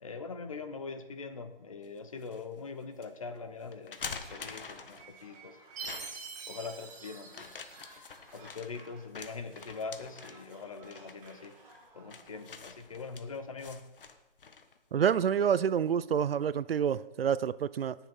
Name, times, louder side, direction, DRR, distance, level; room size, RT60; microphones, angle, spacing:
voice 1, 0.0-6.1 6.5-7.6 8.3-11.6 11.9-13.9, left 4 dB, 35° left, 9 dB, 0.8 m, -42 dB
sound 1, 1.8-2.4 3.0-3.1 3.7-5.2 5.8-6.4 7.3-14.8, left 5 dB, 60° left, 1.2 m, -46 dB
sound 2, 4.0-12.5, right 3 dB, 40° right, 5.0 m, -57 dB
Chime, 5.8-8.2, right 5 dB, 20° right, 1.3 m, -44 dB
voice 2, 14.9-17.9, right 8 dB, 75° right, 18 dB, 0.6 m, -28 dB
18.5 x 7.0 x 4.4 m, 1.0 s
hypercardioid pair, 175°, 30 cm